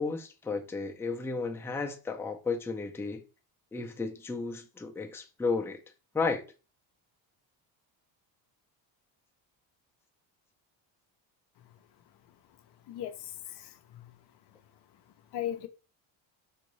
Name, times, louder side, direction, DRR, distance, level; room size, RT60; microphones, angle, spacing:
voice 1, 0.0-3.2 3.7-5.8 6.1-6.4, left 4 dB, 5° left, 0.5 m, -33 dB
voice 2, 12.9-14.1 15.3-15.7, left 11 dB, 55° left, 0.6 m, -38 dB
3.8 x 2.5 x 3.1 m
supercardioid pair, 85°, 49 cm